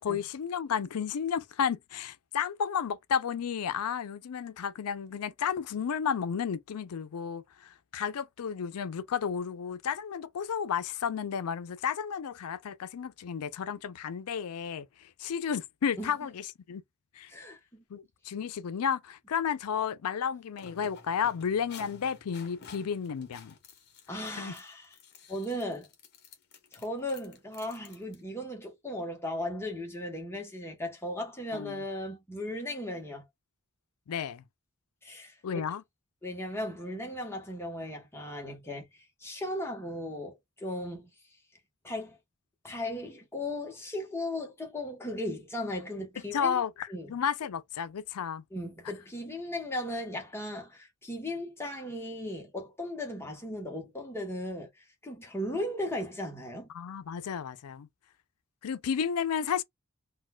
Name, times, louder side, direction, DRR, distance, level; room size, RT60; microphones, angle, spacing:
voice 1, 0.0-14.9 15.2-16.8 17.2-17.3 17.9-23.5 24.1-24.5 31.5-31.8 34.1-34.4 35.4-35.8 46.3-48.4 56.7-57.9 58.6-59.6, left 7 dB, 90° left, 0.4 m, -32 dB
voice 2, 17.3-17.8 24.1-25.0 25.3-25.9 26.7-33.2 35.0-35.4 36.2-38.9 39.2-41.1 41.8-42.2 42.6-46.6 46.9-47.1 48.5-54.7 55.0-56.7, left 1 dB, 10° left, 0.9 m, -36 dB
sound 1, 20.5-28.2, left 5 dB, 50° left, 0.9 m, -52 dB
3.9 x 2.2 x 2.2 m
head